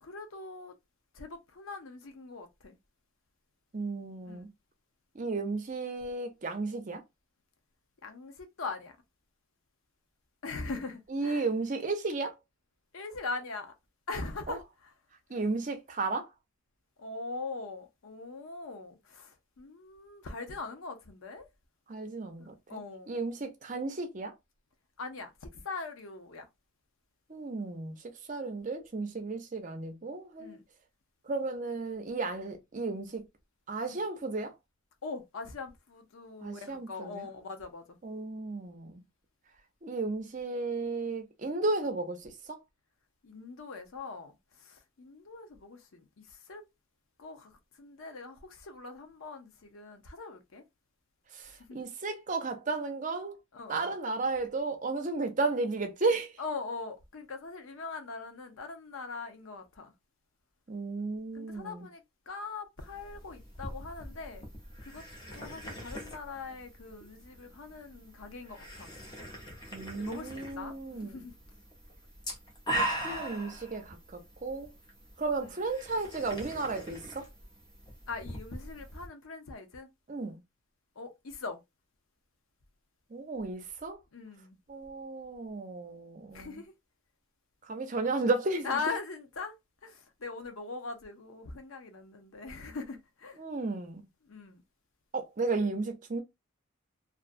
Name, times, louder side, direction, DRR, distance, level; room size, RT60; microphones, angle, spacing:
voice 1, 0.0-0.7 1.1-2.8 4.3-4.5 8.0-9.0 10.4-11.5 12.9-13.7 14.1-14.9 17.0-21.5 22.4-23.1 25.0-26.5 30.4-30.6 35.0-38.0 43.2-44.3 44.6-46.6 47.2-50.7 51.6-51.9 53.5-53.9 56.4-59.9 61.3-64.5 64.8-65.0 65.3-68.9 69.9-71.3 75.4-75.5 78.1-79.9 81.0-81.6 84.1-84.6 86.3-86.7 88.6-89.6 89.8-93.4 94.2-94.6, left 4 dB, 85° left, 0.7 m, -41 dB
voice 2, 3.7-4.5 5.1-7.0 11.1-12.3 14.5-14.6 15.3-16.3 21.9-22.8 23.1-24.3 27.3-28.0 28.3-30.6 31.3-33.2 33.7-34.5 36.4-37.3 38.0-39.0 39.8-42.6 51.3-53.4 53.7-56.3 60.7-61.9 69.7-71.1 72.7-74.7 75.2-77.3 80.1-80.4 83.1-84.0 84.7-86.6 87.7-88.8 93.4-94.0 95.1-96.2, right 3 dB, 40° right, 0.5 m, -34 dB
sound 1, 62.8-79.1, right 1 dB, 20° left, 0.7 m, -41 dB
2.5 x 2.2 x 2.4 m
head